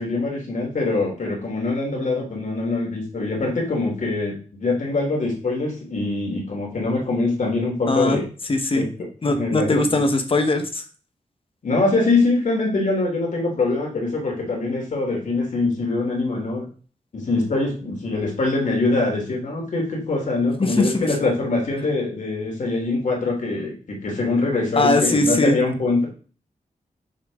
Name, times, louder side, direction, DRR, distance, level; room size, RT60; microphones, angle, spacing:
voice 1, 0.0-8.2 8.7-8.8 9.3-9.9 11.6-16.6 17.1-26.1, left 3 dB, 65° left, -1 dB, 3.1 m, -23 dB
voice 2, 7.9-8.2 8.5-8.9 9.2-10.8 20.6-21.1 24.8-25.6, left 2 dB, 40° left, 7 dB, 1.1 m, -20 dB
6.6 x 6.0 x 3.6 m, 0.39 s
wide cardioid pair, 130°, 14 cm